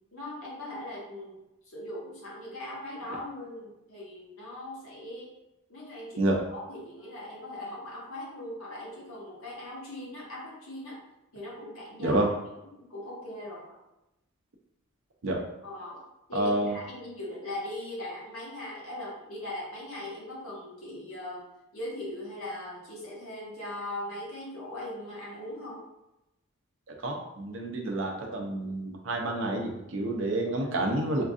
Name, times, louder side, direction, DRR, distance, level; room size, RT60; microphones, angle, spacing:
voice 1, 0.1-1.4 1.7-5.3 5.7-11.0 11.3-12.2 12.7-13.8 15.6-16.0 16.3-21.4 21.7-25.8, left 1 dB, 85° left, -5 dB, 1.3 m, -40 dB
voice 2, 12.0-12.3 15.2-15.4 16.3-16.8 26.9-31.2, right 1 dB, 65° right, 1 dB, 0.6 m, -29 dB
4.4 x 2.6 x 2.4 m, 0.93 s
head